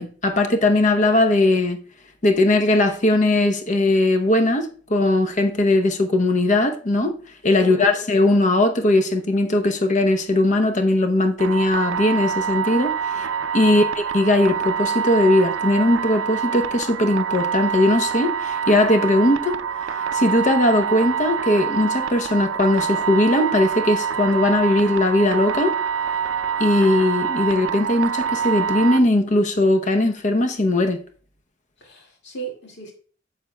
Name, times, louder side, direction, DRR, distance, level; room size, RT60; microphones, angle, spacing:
voice 1, 0.0-1.8 2.2-7.1 7.4-13.3 13.5-13.8 14.1-25.7 26.6-31.0, left 1 dB, 40° left, 0.8 m, -19 dB
voice 2, 7.6-8.1 31.8-32.9, right 2 dB, 60° left, 2.2 m, -35 dB
sound 1, 11.4-29.0, right 7 dB, 80° right, 0.5 m, -26 dB
8.5 x 6.5 x 2.2 m
head